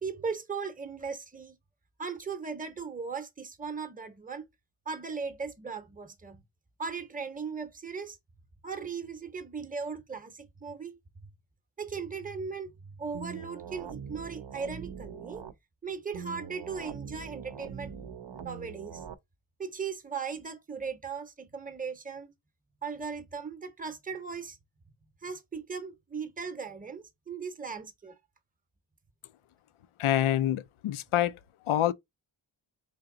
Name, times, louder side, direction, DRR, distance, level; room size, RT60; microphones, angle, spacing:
voice 1, 0.0-1.6 2.0-4.5 4.9-6.4 6.8-8.2 8.6-11.3 11.8-15.4 15.8-18.0 18.3-19.0 19.6-22.3 22.8-24.6 25.2-28.2, right 5 dB, 15° right, 0.8 m, -38 dB
sound 1, 13.1-15.5 16.1-19.1, right 7 dB, 60° right, 0.7 m, -42 dB
voice 2, 30.0-31.4 31.7-31.9, left 12 dB, 75° left, 0.5 m, -26 dB
3.5 x 2.8 x 3.7 m
cardioid pair, 55°, 50 cm